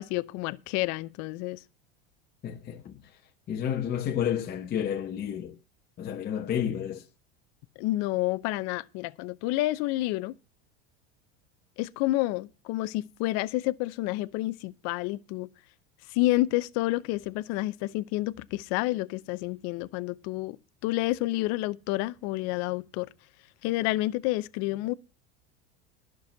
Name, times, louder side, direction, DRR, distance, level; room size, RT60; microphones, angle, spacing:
voice 1, 0.0-1.6 7.8-10.3 11.8-15.5 16.1-20.6 20.8-23.1 23.6-24.9, left 18 dB, 55° left, 0.7 m, -29 dB
voice 2, 2.4-3.0 3.5-5.6 6.0-7.0, left 9 dB, 30° left, 1.2 m, -30 dB
11.5 x 6.2 x 7.3 m
supercardioid pair, 120°, 31 cm